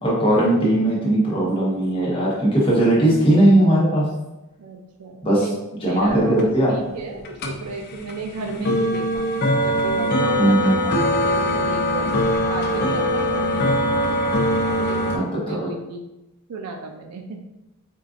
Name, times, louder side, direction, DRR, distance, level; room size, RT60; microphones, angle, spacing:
voice 1, 0.0-4.1 5.2-5.5 5.8-6.8 10.4-10.7 15.1-15.7, right 1 dB, 25° left, -6 dB, 0.9 m, -18 dB
voice 2, 4.6-6.4 6.7-12.2 12.5-13.7 14.7-16.1 16.5-17.4, right 3 dB, 90° right, 3 dB, 0.4 m, -34 dB
sound 1, 6.1-15.2, equal, 45° left, 0.4 m, -22 dB
4.5 x 2.4 x 2.4 m, 0.96 s
head